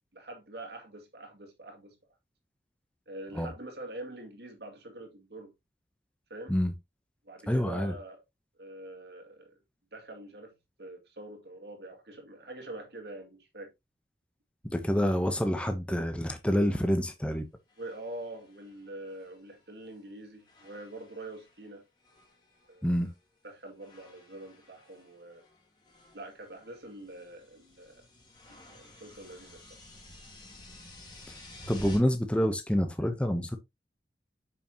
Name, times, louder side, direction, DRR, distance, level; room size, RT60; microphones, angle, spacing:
voice 1, 0.1-2.0 3.1-5.5 6.3-6.5 7.2-8.2 8.6-9.6 9.9-13.7 17.8-21.8 22.7-22.9 23.4-25.4 26.1-28.1 28.5-29.8, right 1 dB, 70° right, 2.2 m, -45 dB
voice 2, 7.5-7.9 14.6-17.5 22.8-23.1 31.7-33.6, equal, 5° left, 0.7 m, -27 dB
sound 1, 17.7-20.1 20.4-21.7 22.0-23.2 23.8-32.0, left 1 dB, 25° left, 2.2 m, -52 dB
6.9 x 5.7 x 2.8 m
head